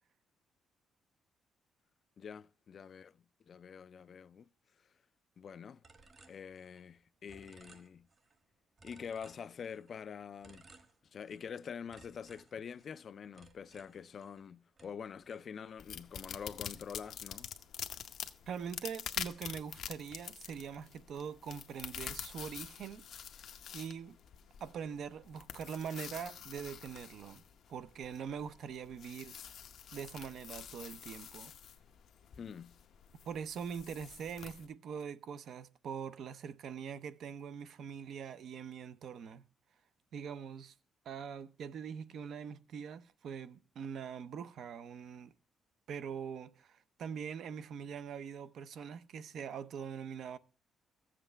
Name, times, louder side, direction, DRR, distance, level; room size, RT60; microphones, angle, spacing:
voice 1, 2.2-4.5 4.8-4.9 5.4-5.8 6.3-8.1 8.8-10.7 11.0-17.5 32.4-32.7, left 7 dB, 50° left, 0.3 m, -46 dB
sound 1, 5.8-7.0 7.3-8.4 8.8-10.0 10.4-11.6 11.9-14.5 14.8-16.0, right 3 dB, 40° right, 1.2 m, -61 dB
sound 2, 15.8-34.7, left 8 dB, 70° left, 0.7 m, -47 dB
voice 2, 18.5-23.0 23.7-24.2 24.6-27.4 27.7-29.4 29.9-31.5 33.2-39.4 40.1-40.7 41.0-45.3 45.9-50.4, right 7 dB, 70° right, 0.6 m, -43 dB
14.0 x 7.5 x 3.3 m
cardioid pair, 90°, 0 cm